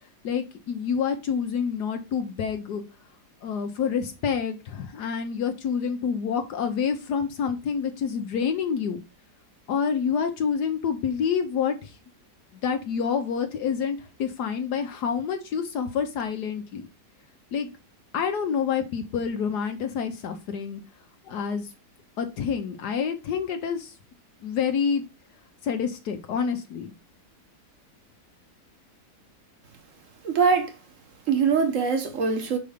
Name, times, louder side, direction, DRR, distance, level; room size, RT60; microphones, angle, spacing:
voice 1, 0.2-2.8 3.4-9.0 9.7-12.0 12.6-16.9 17.5-17.7 18.1-20.8 21.2-21.7 22.2-23.9 24.4-25.0 25.6-26.9, left 6 dB, 75° left, 1.4 m, -28 dB
voice 2, 30.2-30.7 31.3-32.6, right 5 dB, 50° right, 1.6 m, -22 dB
5.4 x 4.7 x 5.0 m
omnidirectional pair, 1.8 m